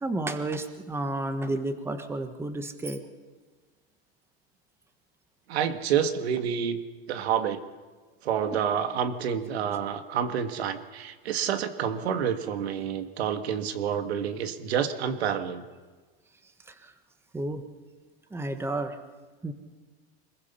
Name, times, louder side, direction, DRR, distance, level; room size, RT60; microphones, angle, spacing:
voice 1, 0.0-3.0 16.7-16.9 17.3-17.6 18.3-19.0 19.4-19.5, right 2 dB, 10° right, 8 dB, 1.3 m, -31 dB
voice 2, 5.5-6.8 7.1-7.6 8.2-15.7, right 8 dB, 90° right, 8 dB, 1.9 m, -28 dB
25.0 x 21.5 x 5.7 m, 1.3 s
supercardioid pair, 145°, 31 cm